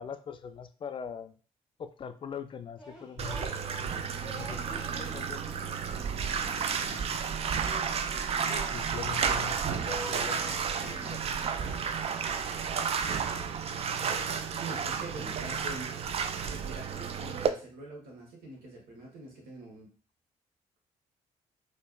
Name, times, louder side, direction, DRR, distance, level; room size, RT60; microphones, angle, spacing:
voice 1, 0.0-1.3 1.8-5.8 6.8-7.2 8.6-11.6, left 7 dB, 30° left, 9 dB, 0.4 m, -43 dB
sound 1, 2.8-9.4 9.7-12.2, right 1 dB, 5° right, 1.5 m, -47 dB
Bathtub (filling or washing), 3.2-17.5, right 6 dB, 35° right, 0.4 m, -32 dB
voice 2, 14.6-16.0 16.4-19.9, right 2 dB, 60° right, 0 dB, 1.3 m, -44 dB
4.4 x 2.5 x 2.3 m, 0.38 s
figure-of-eight pair, 45°, 17 cm